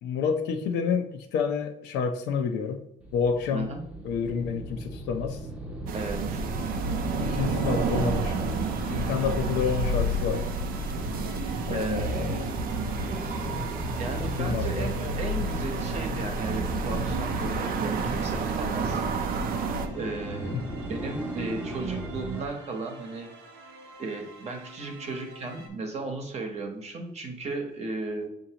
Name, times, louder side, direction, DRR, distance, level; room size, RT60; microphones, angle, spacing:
voice 1, 0.0-2.8 3.1-3.7 4.0-5.4 7.1-8.6 8.9-10.5 11.6-12.5 14.4-14.9 20.5-20.6, left 6 dB, 85° left, 5 dB, 0.6 m, -29 dB
sound 1, 3.0-22.5, right 1 dB, 5° right, 0.8 m, -35 dB
voice 2, 5.9-6.5 11.7-12.1 14.0-19.0 19.9-20.6 20.9-23.3 24.0-28.3, right 3 dB, 40° right, 4 dB, 0.9 m, -35 dB
sound 2, 5.9-19.9, right 3 dB, 60° right, 0.5 m, -31 dB
sound 3, 6.5-25.7, right 3 dB, 85° right, 0.9 m, -48 dB
6.5 x 2.7 x 2.9 m, 0.82 s
cardioid pair, 110°, 17 cm